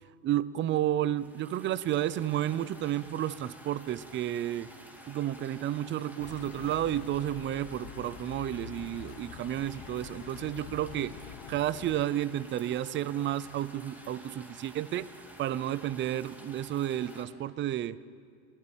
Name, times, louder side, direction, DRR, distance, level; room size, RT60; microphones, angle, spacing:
voice 1, 0.2-4.7 5.1-11.1 11.5-15.1 15.4-18.0, right 12 dB, 25° right, 19 dB, 0.6 m, -31 dB
sound 1, 1.1-17.3, equal, 5° right, 2.6 m, -51 dB
sound 2, 6.2-12.1, left 14 dB, 55° left, 1.1 m, -46 dB
22.5 x 15.5 x 8.9 m, 2.2 s
supercardioid pair, 110°, 46 cm